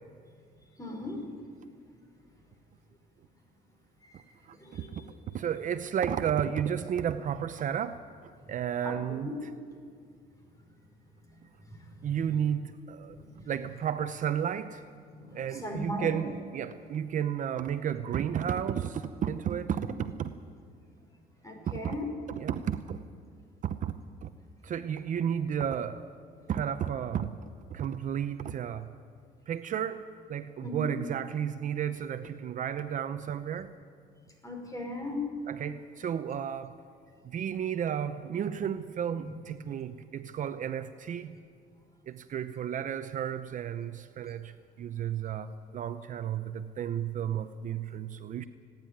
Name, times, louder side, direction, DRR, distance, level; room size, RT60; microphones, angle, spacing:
voice 1, 0.8-1.2 4.1-4.3 4.6-5.1 8.8-9.3 11.3-11.4 11.7-12.3 13.3-13.4 15.1-16.1 19.9-20.0 21.4-22.0 30.6-30.9 34.4-35.2 39.2-39.3, left 1 dB, 20° left, 2 dB, 5.5 m, -38 dB
voice 2, 4.5-5.0 5.3-9.5 12.0-14.8 15.3-20.3 21.7-22.0 22.3-23.0 23.6-23.9 24.2-24.3 24.6-26.0 26.5-27.3 27.7-28.9 29.5-30.0 30.3-33.7 35.5-36.7 37.2-41.3 42.1-48.4, right 9 dB, 50° right, 10 dB, 0.7 m, -33 dB
29.5 x 10.5 x 9.3 m, 2.1 s
cardioid pair, 110°, 17 cm